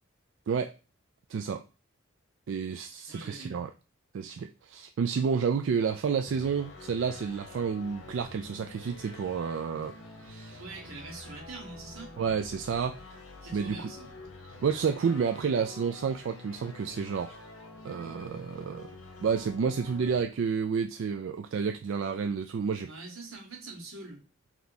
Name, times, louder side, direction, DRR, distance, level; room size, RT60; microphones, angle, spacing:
voice 1, 1.3-1.6 2.5-3.7 4.1-10.6 12.2-13.0 13.5-13.9 14.4-17.4 17.8-18.9 19.2-22.9, right 6 dB, 60° right, 0.3 m, -30 dB
voice 2, 3.1-3.6 10.6-12.2 13.4-14.1 22.8-24.2, right 3 dB, 85° right, 1.5 m, -44 dB
sound 1, 6.2-20.2, left 3 dB, 65° left, 0.9 m, -48 dB
3.4 x 2.8 x 4.0 m
head